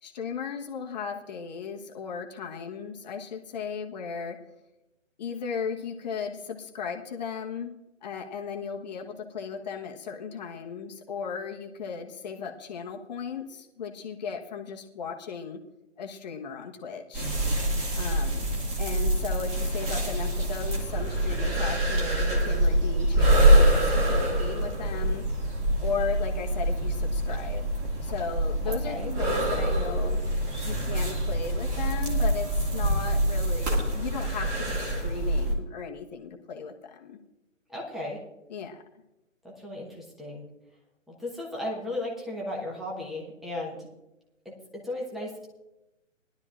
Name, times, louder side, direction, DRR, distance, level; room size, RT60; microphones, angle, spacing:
voice 1, 0.0-4.4 5.2-7.7 8.0-15.6 16.0-17.3 18.0-18.5 18.8-27.7 28.0-30.2 30.6-37.2 38.5-38.8, left 6 dB, 35° left, 2 dB, 1.3 m, -36 dB
sound 1, 17.1-35.5, right 1 dB, 15° right, 2.2 m, -25 dB
voice 2, 28.6-29.1 37.7-38.2 39.4-40.5 41.1-43.9 44.4-45.5, left 1 dB, ahead, -3 dB, 1.2 m, -35 dB
20.0 x 12.0 x 2.5 m, 0.94 s
figure-of-eight pair, 145°, 39 cm